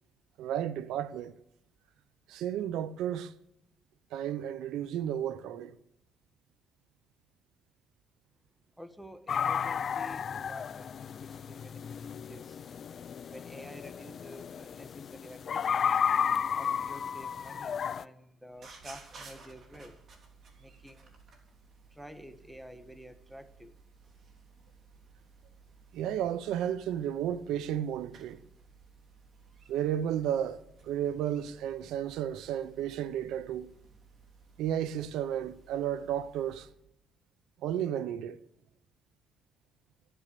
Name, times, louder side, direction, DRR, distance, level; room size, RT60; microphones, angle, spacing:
voice 1, 0.4-1.4 2.3-3.3 4.1-5.8 25.9-28.4 29.7-33.7 34.6-36.7 37.6-38.4, right 10 dB, 90° right, 0.7 m, -33 dB
voice 2, 8.8-12.6 13.3-16.0 16.5-20.0 20.6-21.2 21.9-23.8, equal, 5° right, 1.3 m, -50 dB
sound 1, 9.3-18.0, left 7 dB, 55° left, 0.4 m, -33 dB
sound 2, 18.5-36.7, right 4 dB, 55° right, 3.7 m, -56 dB
14.5 x 10.0 x 6.7 m
cardioid pair, 90°, 0 cm